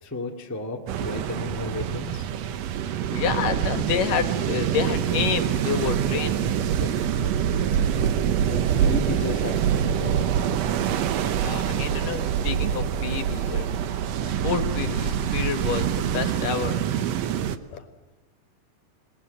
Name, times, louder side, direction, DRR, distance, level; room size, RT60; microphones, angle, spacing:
voice 1, 0.0-2.3 8.4-10.5, left 3 dB, 10° left, 2 dB, 1.2 m, -33 dB
sound 1, 0.9-17.6, right 9 dB, 70° right, 1.6 m, -25 dB
voice 2, 3.1-6.9 11.4-13.7 14.3-16.8 17.7-17.8, left 7 dB, 65° left, 8 dB, 3.1 m, -29 dB
sound 2, 6.9-16.5, right 3 dB, 45° right, 3.9 m, -40 dB
28.0 x 20.0 x 9.3 m, 1.2 s
omnidirectional pair, 4.2 m